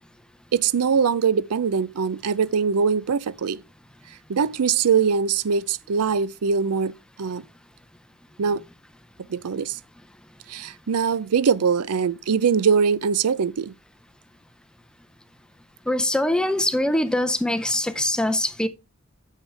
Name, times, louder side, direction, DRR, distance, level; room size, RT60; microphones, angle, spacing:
voice 1, 0.5-3.6 4.3-6.9 7.2-7.4 8.4-8.6 9.3-9.8 10.5-13.7, right 6 dB, 90° right, 0.5 m, -22 dB
voice 2, 15.9-18.7, left 1 dB, 5° left, 0.5 m, -23 dB
9.7 x 6.6 x 3.3 m
head